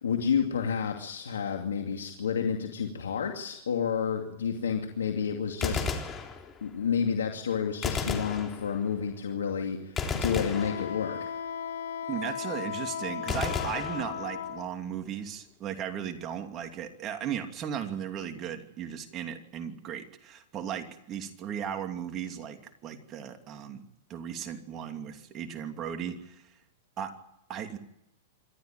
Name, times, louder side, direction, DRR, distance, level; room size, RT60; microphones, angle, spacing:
voice 1, 0.0-6.1 6.6-11.3, left 7 dB, 85° left, 3 dB, 2.5 m, -30 dB
Gunshot gunfire, 5.6-6.8 7.8-9.1 10.0-11.4 13.3-14.6, left 5 dB, 25° left, 3.7 m, -34 dB
Wind instrument woodwind instrument, 10.5-14.7, left 8 dB, 70° left, 1.6 m, -36 dB
voice 2, 12.1-23.8 24.1-26.4 27.0-27.1 27.5-27.8, right 8 dB, 35° right, 6 dB, 2.7 m, -36 dB
27.0 x 13.0 x 9.1 m, 0.82 s
hypercardioid pair, 120°, 0 cm